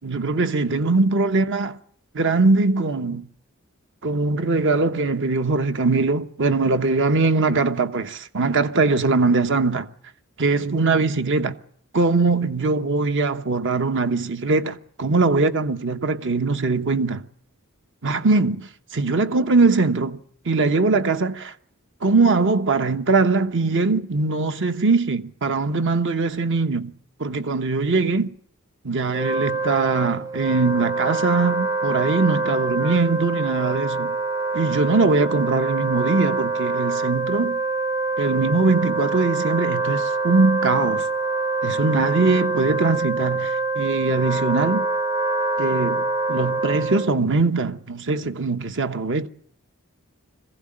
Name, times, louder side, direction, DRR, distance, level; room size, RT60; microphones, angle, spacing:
voice 1, 0.0-1.8 2.1-3.3 4.0-9.9 10.4-11.5 11.9-17.3 18.0-20.2 20.4-21.5 22.0-26.9 27.2-28.3 28.8-34.2 34.5-37.6 38.2-41.1 41.6-44.9 45.6-49.3, right 3 dB, 60° right, 1.1 m, -21 dB
Wind instrument woodwind instrument, 29.1-47.2, right 3 dB, 15° right, 0.8 m, -25 dB
21.5 x 15.5 x 8.8 m
head